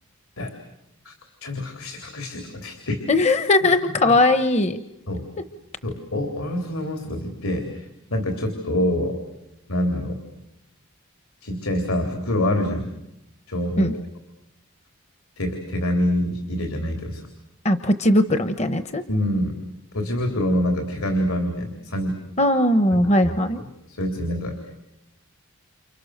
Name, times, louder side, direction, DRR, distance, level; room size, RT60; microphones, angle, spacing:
voice 1, 1.4-3.0 3.6-3.7 4.0-4.2 5.1-5.2 5.8-9.2 9.7-10.2 11.4-12.9 13.5-13.9 15.4-17.2 19.1-19.6 19.9-22.2 22.9-23.3 23.6-24.6, left 1 dB, 75° left, 4 dB, 3.8 m, -26 dB
voice 2, 3.1-4.8 13.8-13.9 17.6-19.0 22.4-23.6, left 1 dB, 30° left, 10 dB, 1.0 m, -19 dB
29.5 x 29.5 x 6.7 m, 0.85 s
head